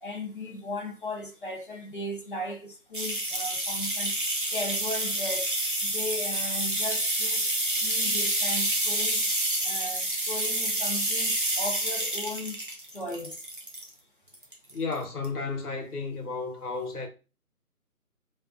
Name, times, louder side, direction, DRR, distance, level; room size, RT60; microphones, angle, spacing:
voice 1, 0.0-4.2 4.5-5.5 5.8-7.5 7.8-9.3 9.6-12.6 12.9-13.4, left 1 dB, 35° left, 0.5 m, -36 dB
sound 1, 2.9-13.9 14.3-14.9 15.2-15.3, right 1 dB, 35° right, 0.5 m, -28 dB
voice 2, 14.7-17.1, left 4 dB, 80° left, 1.0 m, -33 dB
2.4 x 2.3 x 2.4 m
figure-of-eight pair, 155°, 45 cm